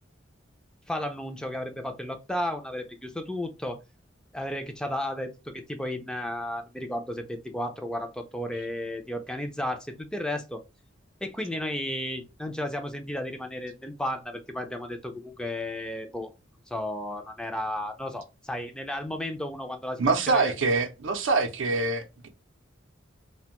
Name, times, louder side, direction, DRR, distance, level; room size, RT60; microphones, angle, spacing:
voice 1, 0.9-3.8 4.3-10.6 11.2-16.3 16.7-20.5, left 1 dB, 5° left, 0.3 m, -33 dB
voice 2, 20.0-22.3, right 3 dB, 85° right, 0.5 m, -25 dB
2.5 x 2.1 x 2.8 m
head